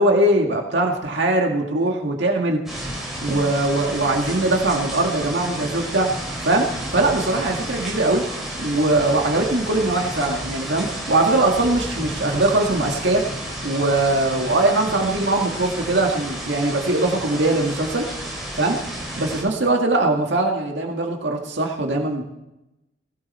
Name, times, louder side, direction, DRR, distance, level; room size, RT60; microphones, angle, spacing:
voice 1, 0.0-2.6 3.2-6.1 6.4-8.3 8.6-13.2 13.6-18.1 18.6-18.8 19.2-22.2, right 2 dB, 70° right, 1 dB, 2.0 m, -21 dB
sound 1, 2.7-19.4, right 1 dB, ahead, 5.7 m, -31 dB
19.5 x 17.0 x 4.3 m, 0.93 s
head